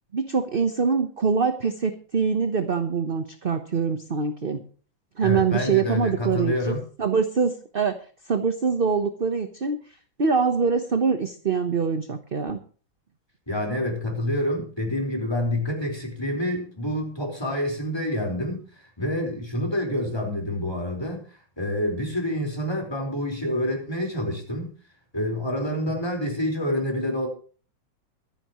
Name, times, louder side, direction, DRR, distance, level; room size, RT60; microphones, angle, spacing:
voice 1, 0.1-4.6 5.2-8.0 8.3-9.8 10.2-12.6, right 5 dB, 35° right, 8 dB, 1.0 m, -24 dB
voice 2, 5.2-6.8 13.5-18.6 19.0-21.2 21.6-24.7 25.1-27.3, left 1 dB, 10° left, 1 dB, 4.7 m, -27 dB
23.5 x 10.5 x 3.1 m, 0.41 s
omnidirectional pair, 2.1 m